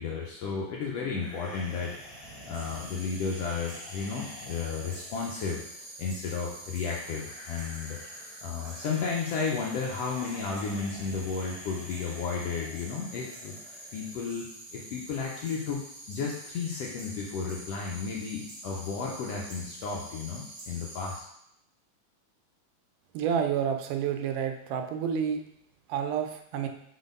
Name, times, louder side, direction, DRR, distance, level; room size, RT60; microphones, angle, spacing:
voice 1, 0.0-1.9 2.5-5.6 6.0-8.0 8.4-13.5 13.9-14.5 14.7-15.8 16.1-21.2, left 5 dB, 75° left, -2 dB, 1.5 m, -33 dB
sound 1, 1.1-14.1, equal, 15° right, 2.3 m, -49 dB
sound 2, 2.5-21.2, right 1 dB, 45° right, 2.1 m, -46 dB
voice 2, 23.1-25.4 25.9-26.7, right 8 dB, 85° right, 5 dB, 2.2 m, -29 dB
4.9 x 4.1 x 5.2 m, 0.75 s
omnidirectional pair, 3.6 m